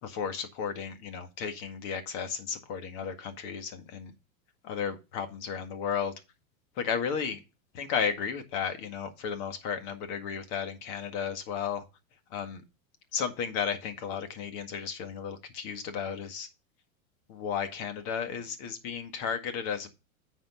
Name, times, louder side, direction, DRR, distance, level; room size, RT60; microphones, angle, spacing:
voice 1, 0.0-4.1 4.6-6.1 6.8-7.4 7.7-11.9 12.3-12.6 13.1-16.5 17.3-19.9, left 7 dB, 50° left, 7 dB, 1.9 m, -34 dB
9.3 x 4.5 x 5.6 m, 0.28 s
supercardioid pair, 125°, 42 cm